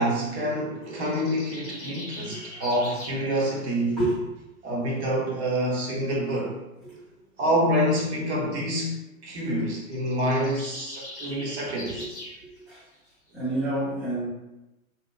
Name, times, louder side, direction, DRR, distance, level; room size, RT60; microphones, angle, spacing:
voice 1, 0.0-4.0 4.6-6.6 7.4-12.1, equal, 50° right, -3 dB, 0.9 m, -27 dB
sound 1, 0.9-3.2 9.8-12.4, left 1 dB, 30° left, 0.8 m, -41 dB
voice 2, 2.3-2.6 4.0-4.2 6.8-7.0 11.2-11.3 12.0-12.1 12.4-12.8 13.3-14.3, right 1 dB, ahead, -15 dB, 0.3 m, -29 dB
2.8 x 2.1 x 2.2 m, 0.98 s
figure-of-eight pair, 110°, 43 cm